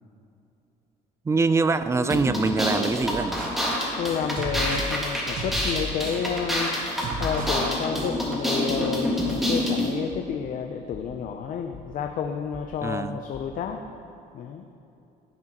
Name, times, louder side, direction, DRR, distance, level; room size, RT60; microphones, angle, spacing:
voice 1, 1.2-3.4 12.8-13.2, right 4 dB, 15° right, 12 dB, 0.3 m, -24 dB
sound 1, 2.1-9.9, left 1 dB, ahead, 1.7 m, -27 dB
sound 2, 3.0-3.6 4.4-5.0 5.4-6.3 7.0-7.6, right 1 dB, 55° right, 1.0 m, -33 dB
voice 2, 4.0-6.7 7.2-13.8 14.3-14.6, left 7 dB, 55° left, 5 dB, 0.5 m, -30 dB
sound 3, 8.8-8.9 9.3-9.7 10.1-10.5 10.9-11.3 11.7-12.1 12.5-12.9 13.3-13.8, left 3 dB, 20° left, 0.9 m, -46 dB
15.0 x 6.1 x 2.9 m, 2.7 s
cardioid pair, 110°, 17 cm